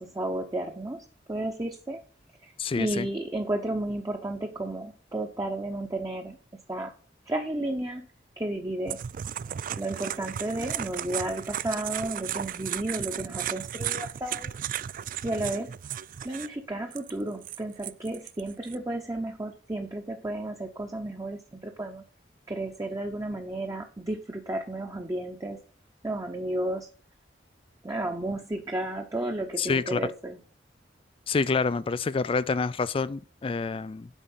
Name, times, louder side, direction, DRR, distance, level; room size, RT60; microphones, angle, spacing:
voice 1, 0.0-2.0 2.4-6.4 6.7-6.9 7.3-8.1 8.4-9.0 9.7-14.5 15.2-15.7 16.2-22.0 22.5-25.6 26.0-26.9 27.8-30.4, right 1 dB, 20° right, 0.9 m, -32 dB
voice 2, 2.6-3.1 29.6-30.0 31.3-34.1, left 4 dB, 30° left, 0.4 m, -27 dB
sound 1, 8.9-16.5 16.9-18.8, right 10 dB, 50° right, 0.3 m, -35 dB
8.2 x 5.2 x 7.5 m
head